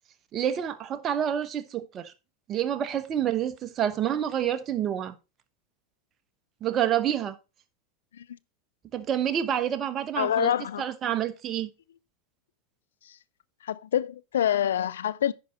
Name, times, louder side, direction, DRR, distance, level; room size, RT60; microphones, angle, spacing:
voice 1, 0.3-2.1 2.5-5.1 6.6-7.4 8.9-10.5 10.8-11.7, right 10 dB, 35° right, 0.9 m, -28 dB
voice 2, 10.2-10.8 13.1-13.2 13.6-15.3, left 10 dB, 85° left, 0.4 m, -26 dB
10.5 x 4.9 x 4.0 m
hypercardioid pair, 100°, 0 cm